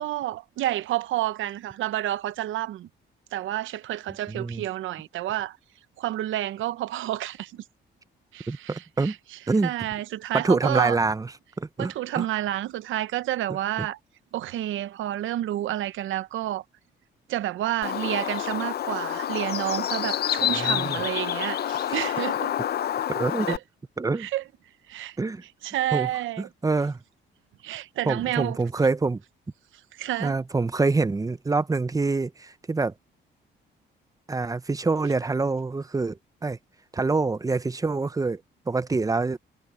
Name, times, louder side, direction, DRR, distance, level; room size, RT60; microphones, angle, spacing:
voice 1, 0.0-2.9 3.3-5.6 6.0-7.6 8.3-9.2 9.6-11.0 11.8-14.0 14.3-16.6 17.3-22.5 23.5-23.6 24.2-24.4 24.9-25.2 25.6-26.5 27.6-28.6 29.9-30.4, right 13 dB, 80° right, 0.8 m, -29 dB
voice 2, 4.3-4.7 8.5-9.1 9.5-9.7 10.3-11.3 11.6-12.3 13.8-13.9 20.4-21.0 21.9-22.0 23.1-23.6 24.0-24.3 25.2-25.4 25.9-26.1 26.4-27.0 28.1-29.2 30.2-32.9 34.3-36.6 36.9-38.4 38.7-39.4, right 3 dB, 15° right, 0.8 m, -26 dB
Bird, 17.8-23.6, left 10 dB, 55° left, 0.7 m, -28 dB
cardioid pair, 90°, 20 cm